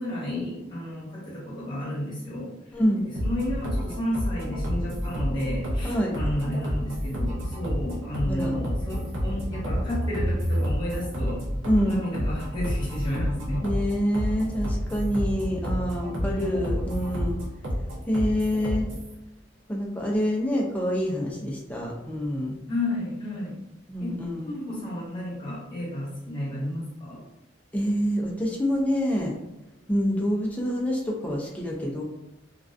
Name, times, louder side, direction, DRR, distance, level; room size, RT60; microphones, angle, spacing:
voice 1, 0.0-2.5 2.9-11.4 11.8-13.7 16.2-16.5 22.7-23.6 24.0-24.2 24.4-27.2, left 1 dB, 25° left, -7 dB, 1.0 m, -32 dB
voice 2, 2.7-3.0 5.8-6.2 8.3-8.6 11.7-12.0 13.6-17.4 18.1-18.9 19.7-22.6 23.9-24.5 27.7-29.3 29.9-32.0, equal, 5° left, -2 dB, 0.3 m, -26 dB
sound 1, 3.1-19.1, equal, 80° right, 0.7 m, -29 dB
2.4 x 2.2 x 2.4 m, 0.94 s
head